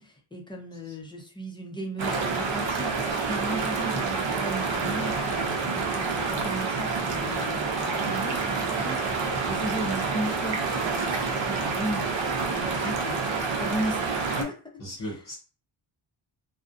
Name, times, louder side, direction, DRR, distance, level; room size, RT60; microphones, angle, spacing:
voice 1, 0.0-14.6 15.0-15.2, right 1 dB, 10° left, 1 dB, 0.4 m, -36 dB
sound 1, 2.0-14.4, right 4 dB, 60° right, 0.7 m, -28 dB
voice 2, 14.8-15.4, equal, 40° left, -1 dB, 0.7 m, -37 dB
2.4 x 2.1 x 2.4 m, 0.36 s
cardioid pair, 100°, 49 cm